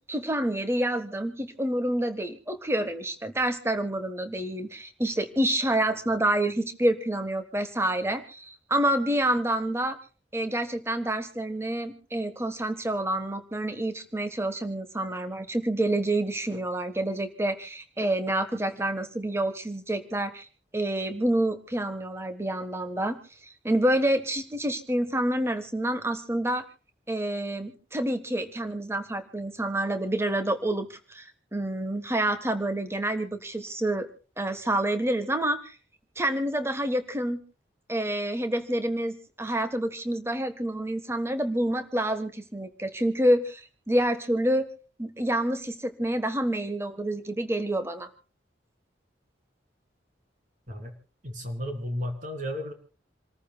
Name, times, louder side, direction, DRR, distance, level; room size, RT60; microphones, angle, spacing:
voice 1, 0.1-10.0 10.3-20.5 20.7-23.2 23.6-26.6 27.1-34.1 34.4-35.7 36.2-37.4 37.9-44.6 45.0-48.1, right 1 dB, 15° right, 10 dB, 1.4 m, -28 dB
voice 2, 51.2-52.7, equal, 40° right, 4 dB, 3.4 m, -33 dB
28.5 x 14.0 x 2.4 m, 0.39 s
head